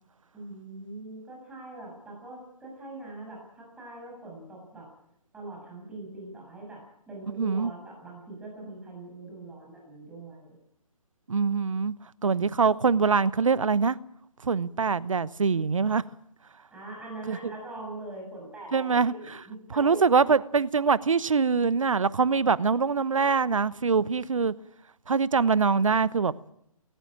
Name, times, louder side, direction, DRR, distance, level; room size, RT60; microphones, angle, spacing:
voice 1, 0.3-4.9 5.3-10.6 16.7-20.3, right 2 dB, 5° right, 6.7 m, -42 dB
voice 2, 7.4-7.7 11.3-11.9 12.2-14.0 14.4-16.0 17.3-17.4 18.7-19.1 19.8-24.5 25.1-26.3, right 5 dB, 60° right, 1.0 m, -23 dB
19.0 x 18.5 x 8.7 m
figure-of-eight pair, 140°, 19 cm